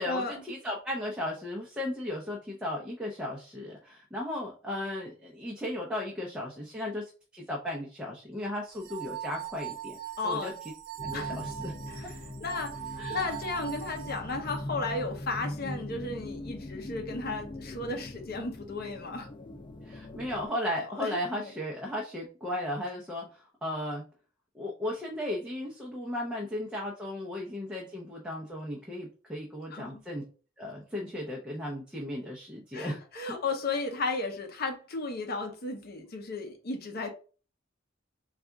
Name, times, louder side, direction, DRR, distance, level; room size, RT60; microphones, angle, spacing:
voice 1, 0.0-10.0 10.2-10.5 11.0-11.7 13.0-13.3 19.8-24.0 24.5-30.2 30.6-33.0, left 1 dB, 5° right, 0.7 m, -35 dB
sound 1, 8.7-14.6, right 12 dB, 50° right, 0.4 m, -41 dB
voice 2, 10.2-10.5 11.1-11.4 11.9-12.1 12.4-19.3 21.0-21.5 29.7-29.9 32.7-37.1, left 3 dB, 50° left, 0.7 m, -34 dB
sound 2, 11.0-20.5, left 1 dB, 25° left, 0.3 m, -41 dB
4.1 x 2.4 x 3.5 m
head